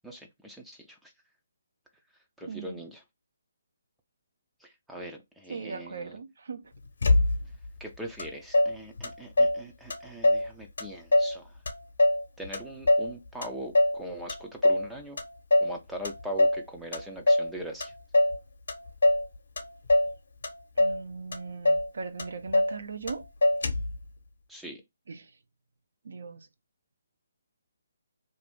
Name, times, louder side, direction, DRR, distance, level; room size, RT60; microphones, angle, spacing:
voice 1, 0.0-1.1 2.4-3.0 4.6-6.2 7.8-11.5 12.4-15.2 15.6-17.9 24.5-24.8, right 1 dB, 5° right, 0.4 m, -41 dB
voice 2, 2.4-2.8 5.5-6.7 20.8-23.2 25.1-25.3 26.0-26.5, right 4 dB, 65° right, 0.5 m, -39 dB
Motor vehicle (road), 7.0-7.7 8.2-8.3 8.5-9.6 9.9-10.5 10.8-11.4 11.7-13.1 13.4-14.0 14.3-14.9 15.2-15.8 16.0-16.6 16.9-17.5 17.8-18.4 18.7-19.3 19.6-20.1 20.4-21.0 21.3-21.4 21.6-21.9 22.2-22.8 23.1-23.2 23.4-24.0, left 1 dB, 65° left, 0.8 m, -23 dB
2.6 x 2.4 x 3.5 m
figure-of-eight pair, 145°, 0 cm